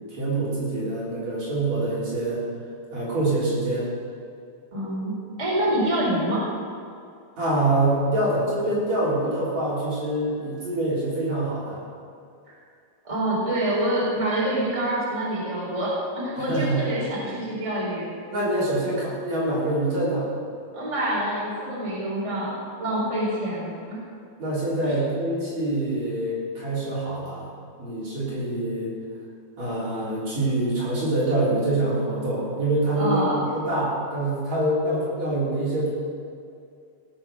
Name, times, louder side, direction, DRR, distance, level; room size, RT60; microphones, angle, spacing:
voice 1, 0.1-2.4 2.9-3.9 7.4-11.8 16.5-16.7 18.3-20.3 24.4-27.5 27.8-28.9 29.6-33.3 33.5-35.9, right 1 dB, 45° right, -8 dB, 4.7 m, -25 dB
voice 2, 4.7-5.1 5.4-6.4 12.5-12.6 13.0-18.1 20.7-22.5 22.8-24.0 24.8-24.9 33.0-33.4, right 1 dB, 10° right, -6 dB, 3.8 m, -26 dB
18.0 x 7.8 x 6.4 m, 2.4 s
omnidirectional pair, 4.4 m